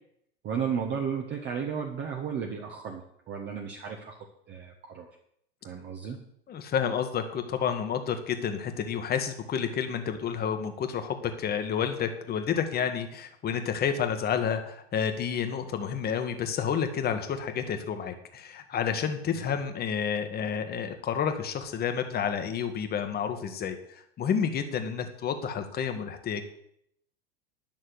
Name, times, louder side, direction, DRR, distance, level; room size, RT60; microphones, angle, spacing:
voice 1, 0.4-3.0 3.3-4.2 4.5-5.1 5.6-6.2 19.4-19.5, right 7 dB, 35° right, 1 dB, 1.5 m, -33 dB
voice 2, 6.5-23.8 24.2-26.4, left 7 dB, 30° left, 7 dB, 1.7 m, -30 dB
11.0 x 6.4 x 8.0 m, 0.72 s
figure-of-eight pair, 85°, 31 cm